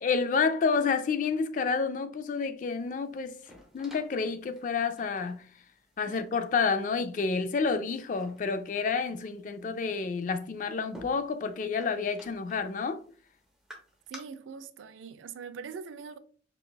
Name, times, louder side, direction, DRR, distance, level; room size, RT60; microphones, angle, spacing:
voice 1, 0.0-3.4 3.7-5.5 6.0-13.0, left 5 dB, 40° left, 0.3 m, -29 dB
sound 1, 2.8-14.2, equal, 5° right, 0.6 m, -55 dB
voice 2, 14.1-16.2, right 6 dB, 85° right, 0.4 m, -42 dB
4.8 x 2.3 x 2.2 m
head